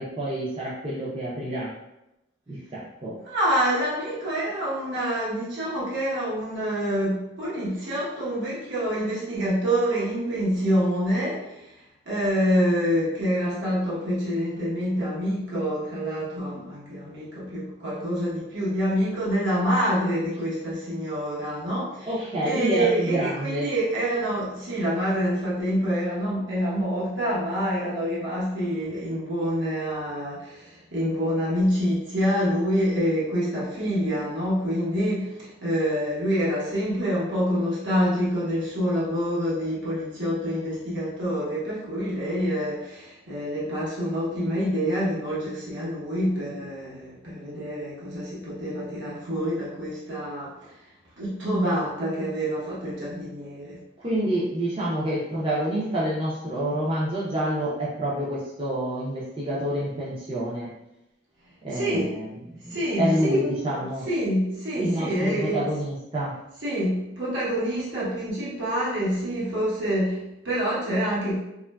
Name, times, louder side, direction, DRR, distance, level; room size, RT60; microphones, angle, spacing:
voice 1, 0.0-1.7 2.5-3.2 22.1-23.7 54.0-60.7 61.6-62.3 62.6-64.1 64.7-66.4, right 1 dB, 30° right, -7 dB, 0.5 m, -28 dB
voice 2, 3.2-11.6 12.1-22.1 22.4-50.7 51.2-53.8 61.7-62.1 62.7-65.6 66.6-71.4, equal, 70° right, -8 dB, 1.0 m, -26 dB
3.0 x 2.4 x 2.2 m, 0.87 s
head